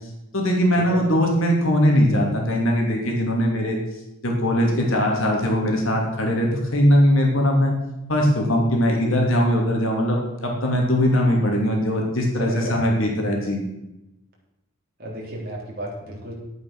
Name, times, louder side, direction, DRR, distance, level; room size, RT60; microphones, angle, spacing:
voice 1, 0.3-3.8 4.2-7.7 8.1-13.6, equal, 70° left, 0 dB, 2.7 m, -20 dB
voice 2, 12.5-12.9 15.0-16.3, right 1 dB, 45° right, -3 dB, 3.7 m, -33 dB
11.0 x 8.7 x 6.1 m, 0.93 s
head